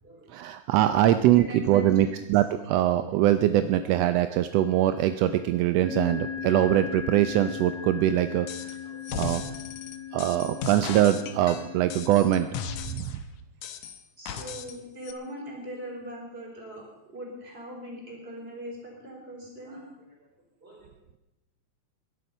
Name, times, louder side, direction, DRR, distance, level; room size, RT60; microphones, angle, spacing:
voice 1, 0.3-8.8 9.1-9.4 10.1-12.5 12.9-13.2, right 12 dB, 80° right, 10 dB, 1.5 m, -23 dB
voice 2, 1.4-2.1 8.8-9.0 10.1-10.5 14.2-20.3 20.6-20.9, equal, 20° right, -1 dB, 4.4 m, -41 dB
sound 1, 4.5-5.0 5.8-12.9, left 8 dB, 45° right, 6.7 m, -38 dB
sound 2, 8.5-8.8 9.0-13.2 13.6-14.8 15.0-15.1, left 7 dB, 70° left, 2.3 m, -37 dB
20.0 x 11.0 x 5.5 m, 0.93 s
omnidirectional pair, 3.5 m